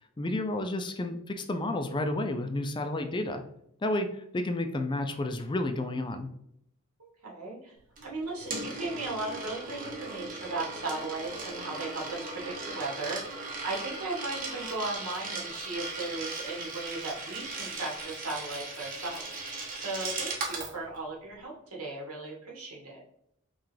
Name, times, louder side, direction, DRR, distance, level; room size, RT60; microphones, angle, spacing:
voice 1, 0.2-3.4 3.8-6.3, left 1 dB, 20° left, 7 dB, 0.4 m, -31 dB
voice 2, 7.0-7.7 8.0-23.0, right 2 dB, 85° right, -2 dB, 1.5 m, -37 dB
Coin (dropping), 8.0-20.7, right 3 dB, 40° right, 1.0 m, -38 dB
5.7 x 2.4 x 3.2 m, 0.75 s
head